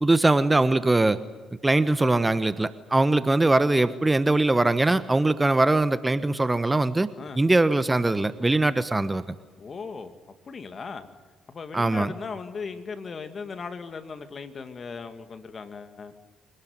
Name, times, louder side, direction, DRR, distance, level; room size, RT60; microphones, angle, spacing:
voice 1, 0.0-1.2 1.6-7.1 7.4-9.2 11.7-12.1, right 2 dB, 20° right, 14 dB, 1.2 m, -21 dB
voice 2, 9.6-10.2 10.5-11.1 11.5-16.1, left 5 dB, 45° left, 9 dB, 2.4 m, -37 dB
25.5 x 19.0 x 9.7 m, 1.4 s
hypercardioid pair, 50°, 0 cm